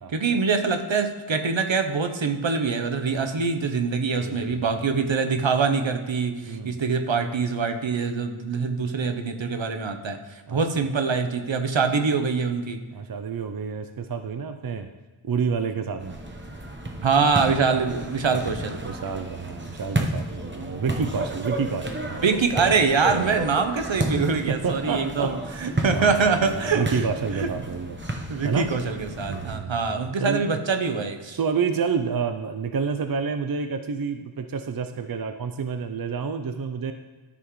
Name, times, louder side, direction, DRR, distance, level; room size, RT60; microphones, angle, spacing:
voice 1, 0.1-12.8 17.0-18.8 22.2-27.0 27.4-27.5 28.3-31.4, right 5 dB, 65° right, 7 dB, 0.9 m, -24 dB
voice 2, 4.2-5.0 6.5-6.8 10.5-10.6 12.9-14.9 15.2-16.2 17.7-17.9 18.3-18.4 18.8-22.2 23.1-23.3 24.5-25.4 25.9-28.0 28.4-28.7 29.3-30.6 31.4-36.9, right 5 dB, 45° right, 8 dB, 0.5 m, -29 dB
sound 1, 16.0-29.6, right 1 dB, 25° right, 0.9 m, -32 dB
13.0 x 5.8 x 3.1 m, 1.3 s
wide cardioid pair, 65°, 49 cm